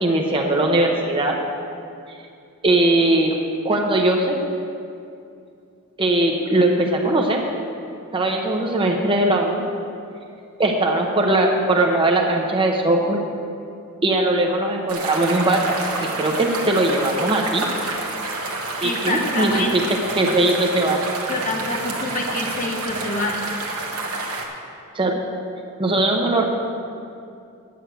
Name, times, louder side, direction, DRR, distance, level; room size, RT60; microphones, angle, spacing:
voice 1, 0.0-1.3 2.6-4.4 6.0-7.4 8.1-9.6 10.6-13.2 14.0-15.6 16.0-17.7 18.8-19.6 20.2-21.0 24.9-25.1 25.8-26.5, right 2 dB, 25° right, 1 dB, 0.9 m, -20 dB
River flow, 14.9-24.4, right 2 dB, 70° right, 1.4 m, -29 dB
voice 2, 18.8-19.8 21.3-23.5, left 2 dB, 35° left, 1 dB, 1.2 m, -26 dB
9.5 x 6.4 x 7.9 m, 2.5 s
head